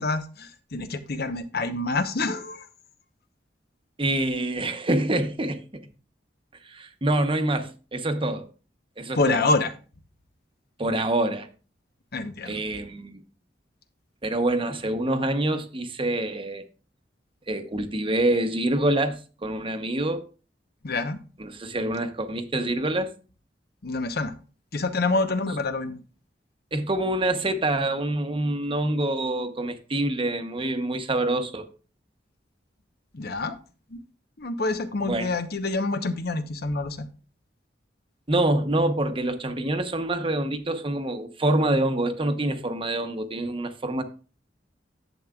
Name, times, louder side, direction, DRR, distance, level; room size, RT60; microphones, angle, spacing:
voice 1, 0.0-2.6 9.2-9.7 12.1-12.5 20.8-21.2 23.8-24.3 24.7-26.0 33.1-33.5 33.9-34.0 34.4-37.1, left 3 dB, 60° left, 0.9 m, -27 dB
voice 2, 4.0-5.8 6.6-8.4 9.0-9.4 10.8-11.5 12.4-13.2 14.2-16.6 17.5-20.2 21.4-23.1 26.7-31.7 35.0-35.4 38.3-44.0, right 1 dB, 30° right, 0.9 m, -26 dB
11.0 x 7.7 x 2.4 m
head